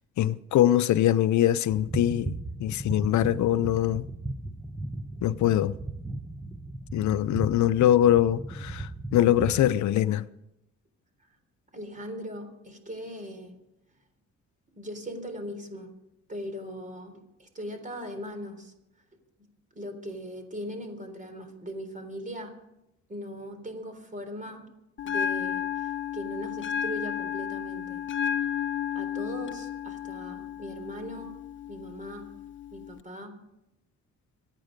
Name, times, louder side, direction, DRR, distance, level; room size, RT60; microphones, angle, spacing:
voice 1, 0.2-2.3 2.6-4.1 5.2-5.8 6.9-10.3, left 12 dB, 70° left, 0.6 m, -23 dB
sound 1, 1.7-9.8, right 2 dB, 5° right, 0.9 m, -36 dB
voice 2, 11.7-13.6 14.7-15.9 16.3-18.7 19.7-22.6 23.1-24.7 25.0-28.0 28.9-31.4 31.7-32.4 32.7-33.4, equal, 25° right, 3.7 m, -39 dB
Bell, 25.0-33.0, left 9 dB, 40° left, 1.0 m, -33 dB
26.0 x 9.3 x 5.2 m
cardioid pair, 90°, 30 cm